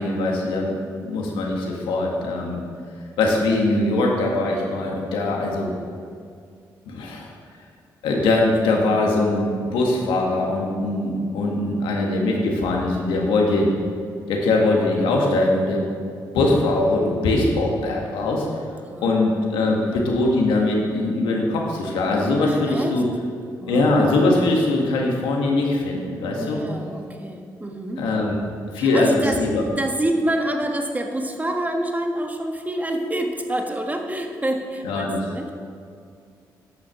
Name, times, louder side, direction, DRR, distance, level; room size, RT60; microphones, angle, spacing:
voice 1, 0.0-2.6 3.2-5.7 6.8-7.3 8.0-13.7 14.3-15.8 16.3-18.5 19.0-23.0 23.7-26.6 28.0-28.4 28.7-29.6 34.8-35.2, left 2 dB, 85° left, -1 dB, 1.7 m, -21 dB
voice 2, 18.8-19.3 19.8-20.0 22.4-23.0 23.6-24.0 26.4-28.1 28.7-29.4 29.8-35.5, right 1 dB, 20° right, 3 dB, 1.5 m, -27 dB
10.0 x 6.6 x 5.7 m, 2.3 s
supercardioid pair, 50°, 8 cm